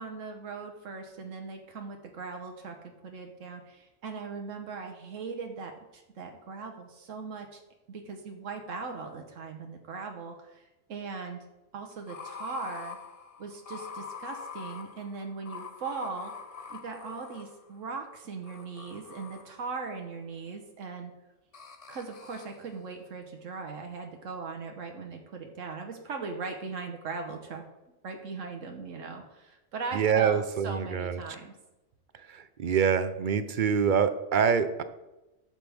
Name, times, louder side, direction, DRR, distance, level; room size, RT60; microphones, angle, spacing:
voice 1, 0.0-2.8 3.0-7.6 7.9-10.6 10.9-11.4 11.7-13.0 13.4-16.3 16.7-21.1 21.9-27.6 28.0-31.5, right 4 dB, 90° right, 3 dB, 1.3 m, -39 dB
sound 1, 11.9-17.9 18.4-19.8 21.5-22.7, left 6 dB, 40° left, 0.6 m, -44 dB
voice 2, 29.9-31.2 32.3-34.8, right 7 dB, 50° right, 11 dB, 0.7 m, -25 dB
12.0 x 7.6 x 3.5 m, 0.99 s
omnidirectional pair, 1.3 m